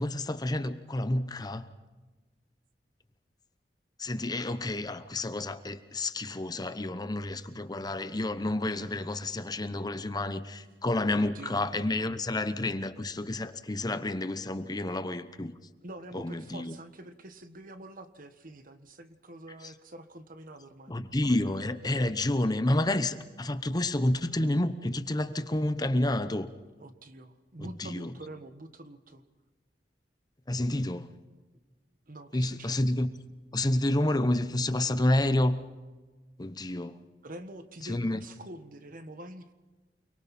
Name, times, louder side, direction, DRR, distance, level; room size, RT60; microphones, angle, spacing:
voice 1, 0.0-1.7 4.0-15.5 16.1-16.7 20.9-26.5 27.6-28.1 30.5-31.1 32.3-33.1 33.5-35.6 36.4-37.0 37.9-38.2, left 1 dB, 25° left, 0.9 m, -29 dB
voice 2, 11.1-11.8 15.8-20.9 26.8-29.2 32.1-32.9 37.2-39.5, right 1 dB, 55° right, 1.4 m, -46 dB
29.5 x 22.5 x 4.3 m
head